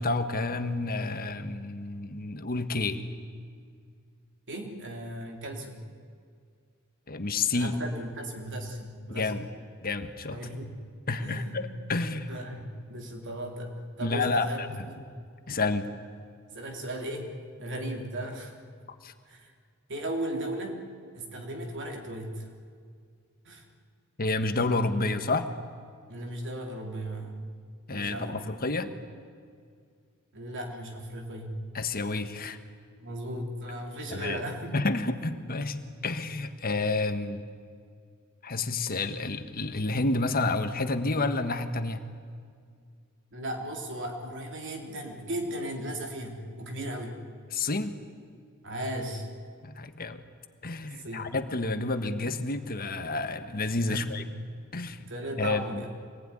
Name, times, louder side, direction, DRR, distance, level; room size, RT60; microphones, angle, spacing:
voice 1, 0.0-3.0 7.1-7.7 9.1-9.4 9.8-10.4 11.1-12.3 14.0-14.9 15.5-15.9 19.0-19.1 24.2-25.5 27.9-28.9 31.7-32.6 34.1-34.4 34.7-37.4 38.4-42.0 47.5-47.9 49.6-50.2 50.6-54.2 54.7-55.0 55.4-55.8, left 3 dB, 45° left, 9 dB, 1.5 m, -29 dB
voice 2, 4.5-5.9 7.5-9.5 10.3-10.8 11.2-11.7 12.3-14.6 14.9-15.1 16.5-18.5 19.3-19.5 19.9-20.8 21.1-22.5 23.5-23.7 26.1-27.5 27.9-29.0 30.3-31.6 33.0-34.8 35.2-35.3 43.3-47.2 48.6-49.3 50.8-51.3 53.9-54.1 55.0-55.9, right 1 dB, 60° right, 2 dB, 3.6 m, -36 dB
25.5 x 20.0 x 10.0 m, 2.2 s
head